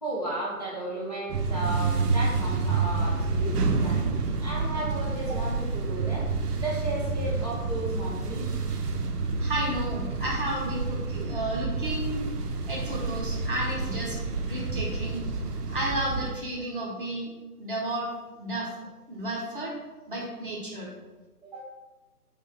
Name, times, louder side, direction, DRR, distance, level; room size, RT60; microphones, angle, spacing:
voice 1, 0.0-4.1 4.4-6.3 6.6-8.5 21.4-21.7, right 1 dB, 30° left, -8 dB, 0.5 m, -34 dB
sound 1, 1.3-16.3, right 4 dB, 85° right, 0.5 m, -29 dB
voice 2, 9.4-12.3 12.6-15.2 15.7-17.3 17.6-18.1 18.4-18.7 19.1-19.7 20.1-20.9, right 1 dB, 35° right, -4 dB, 0.7 m, -32 dB
2.6 x 2.2 x 3.9 m, 1.1 s
figure-of-eight pair, 145°, 46 cm